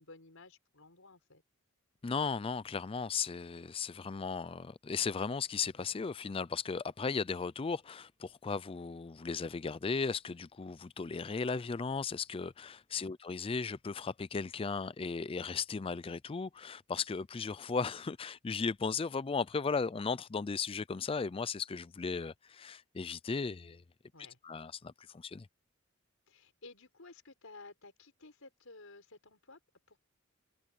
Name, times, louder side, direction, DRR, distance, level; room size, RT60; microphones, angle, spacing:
voice 1, 0.0-1.4 12.9-13.1 24.1-24.4 26.3-29.6 29.9-30.0, left 3 dB, 85° left, 4.8 m, -54 dB
voice 2, 2.0-23.8 24.4-25.5, left 5 dB, 25° left, 0.4 m, -36 dB
head